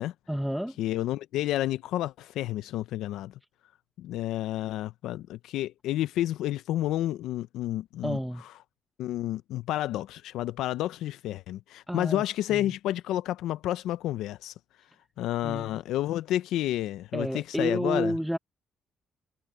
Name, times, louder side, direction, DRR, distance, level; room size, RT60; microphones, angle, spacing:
voice 1, 0.3-0.8 8.0-8.4 11.9-12.2 12.5-12.7 15.4-15.8 17.1-18.4, equal, ahead, 0.8 m, -30 dB
voice 2, 0.8-3.3 4.0-8.2 9.0-14.5 15.2-18.1, left 14 dB, 85° left, 0.4 m, -30 dB
cardioid pair, 140°, 0 cm